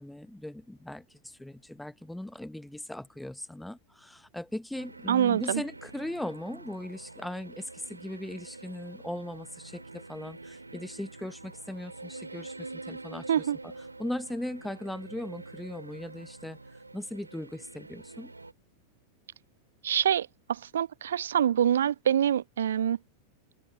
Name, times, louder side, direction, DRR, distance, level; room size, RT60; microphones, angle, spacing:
voice 1, 0.0-13.7 14.0-16.6 16.9-18.3, left 1 dB, 5° left, 1.0 m, -39 dB
sound 1, 4.7-18.5, right 3 dB, 80° right, 4.2 m, -46 dB
voice 2, 5.1-5.6 13.3-13.6 19.8-23.0, right 9 dB, 65° right, 1.0 m, -25 dB
figure-of-eight pair, 90°, 0 cm